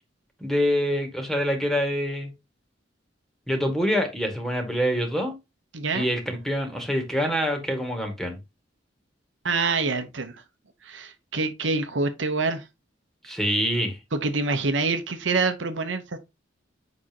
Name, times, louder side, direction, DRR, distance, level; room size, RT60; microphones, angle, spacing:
voice 1, 0.4-2.3 3.5-5.3 5.9-8.4 13.3-14.0, equal, ahead, 2.0 m, -25 dB
voice 2, 5.7-6.1 9.4-10.3 10.8-12.6 14.1-16.2, right 3 dB, 80° right, 1.1 m, -26 dB
7.6 x 5.3 x 3.0 m
head